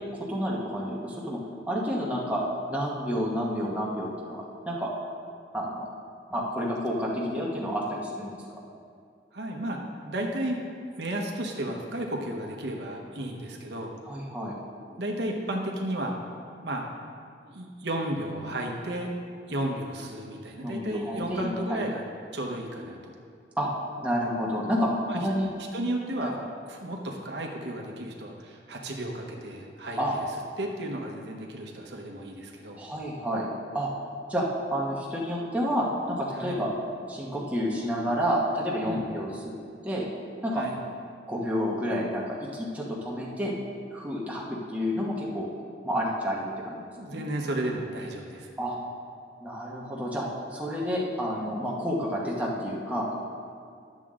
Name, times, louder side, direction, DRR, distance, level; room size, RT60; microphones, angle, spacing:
voice 1, 0.3-2.4 2.7-4.9 5.5-5.8 6.3-8.4 14.1-14.6 20.6-21.8 23.6-23.7 24.0-25.5 26.2-26.3 30.0-30.2 32.8-33.5 33.7-33.9 34.3-36.7 37.1-39.3 39.8-40.1 40.4-40.6 41.3-43.5 43.9-45.5 45.8-47.2 48.6-48.8 49.4-53.1, equal, 10° right, -5 dB, 1.3 m, -30 dB
voice 2, 9.3-9.8 10.0-10.6 10.9-13.9 15.0-16.2 16.6-16.9 17.4-19.1 19.5-22.0 22.3-23.1 25.1-25.2 25.7-30.0 30.6-32.8 36.3-36.6 38.8-39.1 40.5-40.7 47.0-48.5, right 1 dB, 70° right, 1 dB, 1.1 m, -33 dB
11.5 x 7.4 x 3.7 m, 2.3 s
head